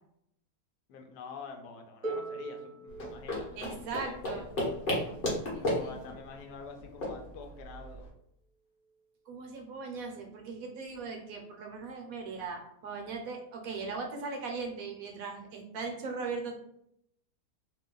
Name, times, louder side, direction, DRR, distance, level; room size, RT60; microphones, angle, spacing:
voice 1, 0.9-4.6 5.6-8.1, left 5 dB, 90° left, 4 dB, 1.2 m, -46 dB
Harp, 2.0-7.8 8.9-9.0, right 3 dB, 45° right, 0.6 m, -44 dB
sound 1, 2.9-8.1, left 1 dB, 40° left, 1.0 m, -35 dB
voice 2, 3.6-4.4 5.5-5.9 9.3-16.6, right 4 dB, 70° right, 2 dB, 1.0 m, -39 dB
2.9 x 2.1 x 3.7 m, 0.73 s
omnidirectional pair, 1.7 m